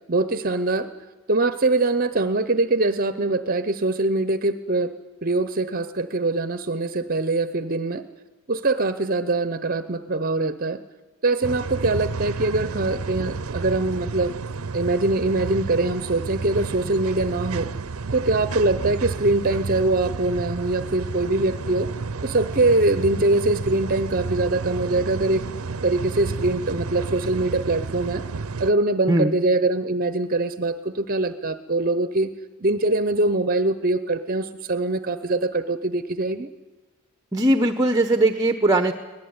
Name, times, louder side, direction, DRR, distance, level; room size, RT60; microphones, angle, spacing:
voice 1, 0.1-0.9 1.3-4.9 5.2-8.0 8.5-10.8 11.2-14.3 14.7-17.7 18.1-21.9 22.2-25.4 25.8-28.2 28.6-32.3 32.6-36.5, right 2 dB, 40° right, 12 dB, 0.8 m, -23 dB
sound 1, 11.4-28.7, right 4 dB, 75° right, 0.7 m, -31 dB
voice 2, 37.3-38.9, right 1 dB, 15° right, 8 dB, 0.9 m, -19 dB
24.5 x 18.0 x 9.6 m, 1.3 s
head